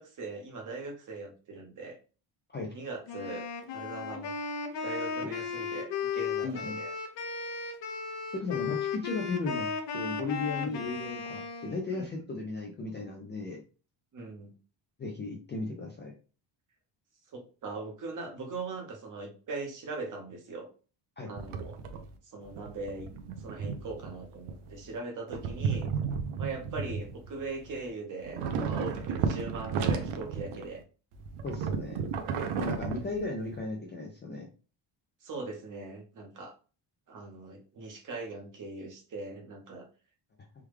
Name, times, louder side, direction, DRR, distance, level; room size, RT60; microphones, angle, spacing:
voice 1, 0.0-2.0 2.7-3.5 3.7-4.3 4.8-6.9 10.6-10.8 14.1-14.5 17.3-20.7 21.2-21.7 22.2-23.1 23.4-25.9 26.4-30.8 35.2-36.5 37.1-39.9, right 3 dB, 40° right, 2 dB, 0.8 m, -40 dB
Wind instrument woodwind instrument, 3.1-11.8, left 5 dB, 55° left, 0.7 m, -35 dB
voice 2, 6.4-6.8 8.3-9.7 9.9-13.6 15.0-16.1 21.2-21.3 31.4-32.0 32.6-34.5, left 3 dB, 25° left, 0 dB, 0.3 m, -35 dB
sound 1, 21.4-22.1 22.4-25.0 25.3-27.9 28.2-30.8 31.1-33.5, right 6 dB, 85° right, 0.7 m, -34 dB
3.5 x 2.2 x 3.1 m, 0.36 s
cardioid pair, 165°, 50 cm